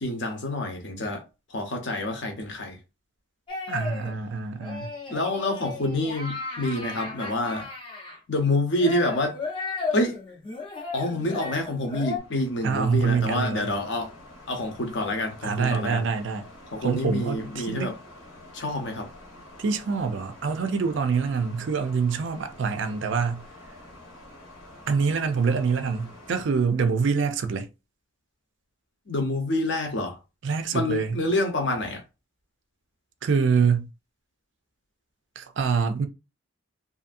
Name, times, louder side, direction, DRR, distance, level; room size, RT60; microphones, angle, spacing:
voice 1, 0.0-1.2 1.5-2.8 5.1-7.7 8.3-9.4 9.9-10.2 10.9-14.1 14.5-16.1 16.7-17.9 18.5-19.1 29.1-30.2 30.7-32.0, left 1 dB, 65° left, 0.8 m, -27 dB
sound 1, 3.5-4.1 4.6-8.2 8.8-12.2, left 4 dB, 25° left, 0.6 m, -35 dB
voice 2, 3.7-4.9 12.6-13.7 15.4-16.5 16.8-17.9 19.6-23.5 24.9-27.7 30.4-31.2 33.2-33.9 35.4-36.1, right 5 dB, 65° right, 0.4 m, -25 dB
sound 2, 11.7-26.4, left 1 dB, 90° left, 1.2 m, -48 dB
2.6 x 2.6 x 2.5 m
head